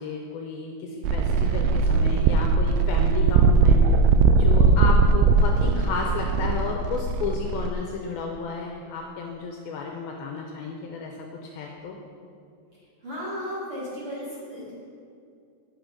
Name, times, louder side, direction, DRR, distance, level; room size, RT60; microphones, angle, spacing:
voice 1, 0.0-4.0 4.4-12.0, left 4 dB, 80° left, 1 dB, 2.2 m, -33 dB
sound 1, 1.0-7.7, right 4 dB, 85° right, 2.7 m, -20 dB
voice 2, 13.0-14.8, equal, 45° right, -9 dB, 1.9 m, -34 dB
8.3 x 7.7 x 5.0 m, 2.4 s
omnidirectional pair, 4.9 m